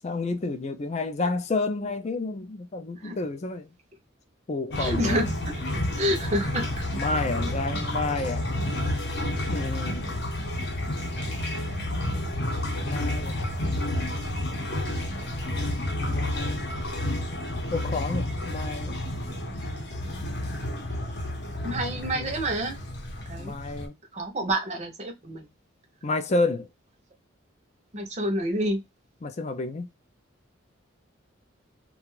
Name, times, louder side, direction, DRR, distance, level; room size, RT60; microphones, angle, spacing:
voice 1, 0.0-3.7 4.5-5.2 6.9-8.5 9.5-10.2 12.8-13.4 16.0-16.8 17.7-19.0 21.9-22.3 23.4-23.9 26.0-26.7 29.2-29.9, left 3 dB, 30° left, 0.4 m, -30 dB
sound 1, 4.7-23.9, left 1 dB, 55° left, 0.7 m, -30 dB
voice 2, 4.8-5.5 6.0-6.8 21.6-22.8 23.3-23.5 24.1-25.5 27.9-28.8, right 1 dB, 35° right, 0.6 m, -28 dB
2.4 x 2.3 x 3.1 m
head